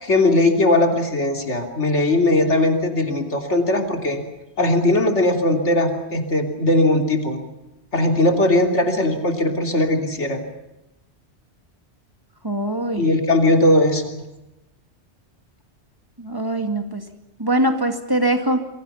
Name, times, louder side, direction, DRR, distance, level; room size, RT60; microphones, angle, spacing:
voice 1, 0.0-4.2 4.6-7.4 7.9-10.4 13.0-14.1, left 2 dB, 80° left, 4 dB, 3.5 m, -19 dB
voice 2, 12.4-13.1 16.2-17.0 17.4-18.6, right 1 dB, 20° right, 5 dB, 2.4 m, -22 dB
28.0 x 23.0 x 5.8 m, 0.95 s
omnidirectional pair, 1.2 m